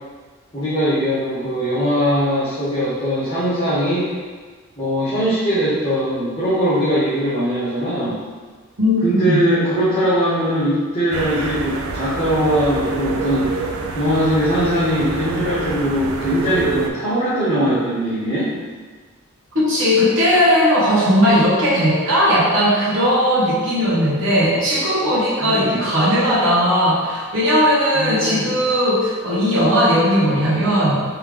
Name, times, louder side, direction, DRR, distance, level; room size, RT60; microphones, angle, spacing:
voice 1, 0.5-4.1 4.8-8.2 9.0-13.7 13.9-18.5 25.4-25.8 27.9-28.6, equal, 25° left, -12 dB, 0.9 m, -20 dB
voice 2, 8.8-9.5 19.5-31.0, equal, 60° right, -10 dB, 1.2 m, -17 dB
sound 1, 11.1-16.9, right 3 dB, 80° right, 0.4 m, -27 dB
3.5 x 3.2 x 3.4 m, 1.5 s
head